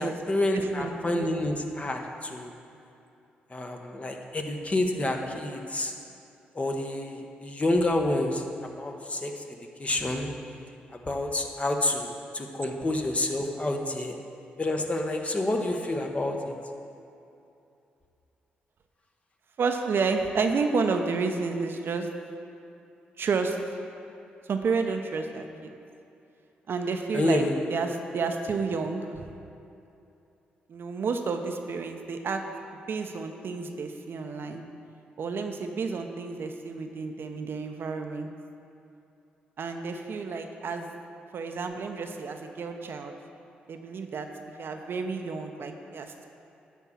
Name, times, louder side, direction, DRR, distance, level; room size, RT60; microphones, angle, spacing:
voice 1, 0.0-2.5 3.5-5.9 6.5-8.4 8.8-9.3 9.8-10.3 11.1-14.2 14.6-16.5 27.1-27.5, left 1 dB, 30° left, 3 dB, 1.0 m, -28 dB
voice 2, 0.5-1.3 19.6-22.1 23.2-23.6 24.4-25.7 26.7-29.2 30.7-32.4 32.9-34.6 35.2-38.3 39.6-40.9 41.3-43.1 43.7-46.3, right 4 dB, 60° right, 5 dB, 0.7 m, -30 dB
10.5 x 3.6 x 7.0 m, 2.7 s
hypercardioid pair, 45°, 4 cm